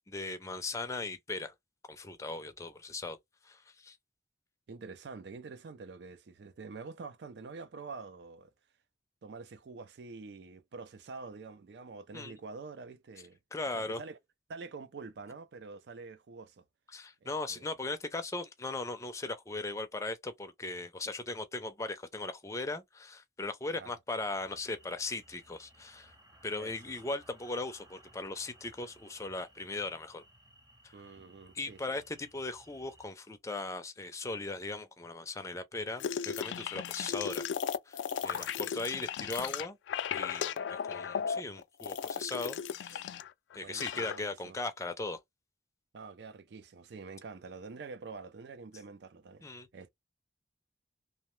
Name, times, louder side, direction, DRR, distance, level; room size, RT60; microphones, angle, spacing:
voice 1, 0.1-1.5 1.9-3.2 3.4-4.0 12.1-12.4 13.5-14.0 16.9-26.1 26.4-30.2 30.8-30.9 31.5-37.5 37.9-39.8 40.1-43.1 43.5-45.2 49.4-49.7, left 3 dB, 15° left, 0.4 m, -38 dB
voice 2, 4.7-8.5 9.2-13.4 13.7-14.2 14.5-16.6 17.2-17.7 23.7-24.0 26.6-26.7 30.9-31.8 38.2-38.5 42.9-43.2 43.6-44.6 45.9-49.9, right 4 dB, 70° right, 0.4 m, -47 dB
sound 1, 24.2-33.1, right 1 dB, 20° right, 0.8 m, -61 dB
sound 2, 36.0-43.3 43.5-44.2, left 7 dB, 85° left, 0.3 m, -36 dB
2.8 x 2.1 x 3.1 m
head